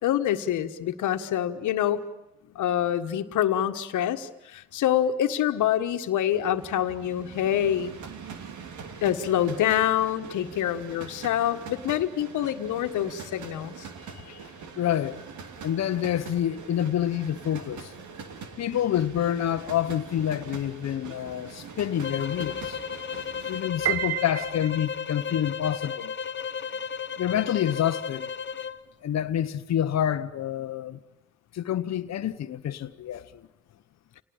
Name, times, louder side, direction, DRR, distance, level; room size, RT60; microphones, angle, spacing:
voice 1, 0.0-2.0 2.5-7.9 9.0-13.9, left 11 dB, 80° left, 1.6 m, -26 dB
sound 1, 6.2-23.6, right 5 dB, 70° right, 3.0 m, -43 dB
voice 2, 14.8-15.2 15.6-17.9 18.6-22.8 23.5-26.1 27.2-28.3 29.0-31.0 31.5-33.4, left 10 dB, 60° left, 1.1 m, -28 dB
sound 2, 22.0-28.8, left 7 dB, 40° left, 1.0 m, -34 dB
Piano, 23.9-25.2, right 12 dB, 50° right, 1.2 m, -30 dB
29.0 x 19.0 x 8.9 m
cardioid pair, 90°, 30 cm